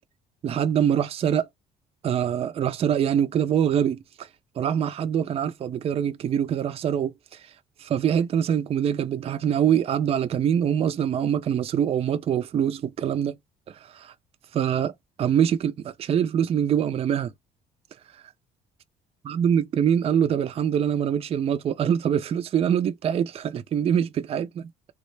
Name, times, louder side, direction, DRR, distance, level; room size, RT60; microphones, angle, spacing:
voice 1, 0.4-1.5 2.0-4.3 4.6-7.4 7.8-13.4 13.7-14.1 14.5-14.9 15.2-17.3 19.2-24.7, right 9 dB, 35° right, 0.4 m, -24 dB
3.5 x 2.1 x 3.1 m
cardioid pair, 110°, 17 cm